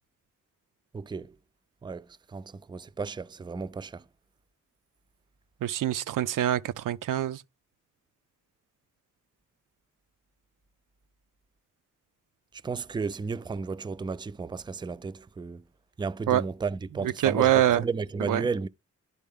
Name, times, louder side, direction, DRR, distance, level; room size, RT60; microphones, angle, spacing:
voice 1, 0.9-1.3 1.8-2.1 2.3-4.0 12.6-15.6 16.0-18.7, right 4 dB, 15° right, 0.4 m, -33 dB
voice 2, 5.6-7.4 16.3-16.4 17.0-17.8 18.3-18.4, right 12 dB, 90° right, 0.5 m, -25 dB
11.0 x 4.1 x 3.6 m
cardioid pair, 70°, 31 cm